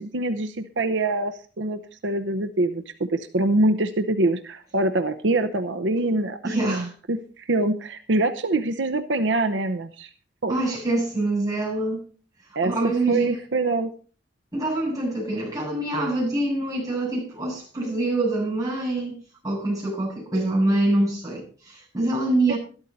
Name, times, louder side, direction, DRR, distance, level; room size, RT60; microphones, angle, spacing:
voice 1, 0.0-10.1 10.4-10.5 12.5-12.7 13.1-13.9 22.5-22.6, right 2 dB, 75° right, 0.8 m, -24 dB
voice 2, 6.4-6.9 10.5-12.0 12.6-13.4 14.5-22.6, right 2 dB, 20° right, 7.4 m, -25 dB
13.0 x 12.0 x 4.1 m
head